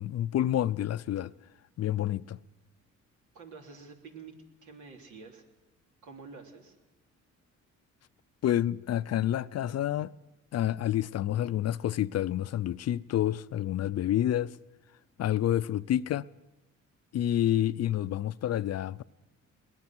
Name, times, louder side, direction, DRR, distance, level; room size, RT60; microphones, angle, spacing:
voice 1, 0.0-1.3 1.8-2.4 8.4-10.1 10.5-14.6 15.2-16.3 17.1-19.0, left 12 dB, 55° left, 0.6 m, -28 dB
voice 2, 3.3-4.3 4.6-5.4 6.0-6.8, right 4 dB, 75° right, 3.5 m, -48 dB
22.0 x 19.0 x 6.1 m
cardioid pair, 90°, 30 cm